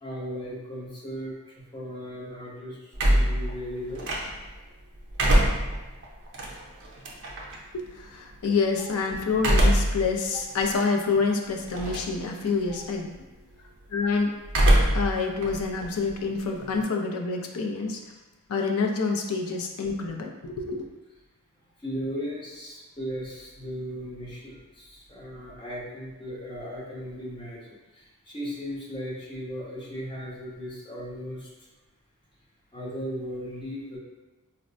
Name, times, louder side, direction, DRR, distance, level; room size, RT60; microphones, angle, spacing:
voice 1, 0.0-1.3 1.7-4.1 12.7-12.8 21.8-31.5 32.7-34.0, equal, 20° left, -6 dB, 0.7 m, -36 dB
sound 1, 2.9-4.6 5.0-7.6 9.4-10.0 10.5-10.6 11.7-12.2 12.5-12.9 14.5-15.1 15.4-16.8, right 1 dB, 55° right, 0.5 m, -23 dB
voice 2, 7.7-13.1 13.9-14.3 14.9-18.1 18.5-20.9, left 4 dB, 75° left, 2 dB, 0.4 m, -27 dB
4.1 x 2.1 x 2.5 m, 1.1 s
head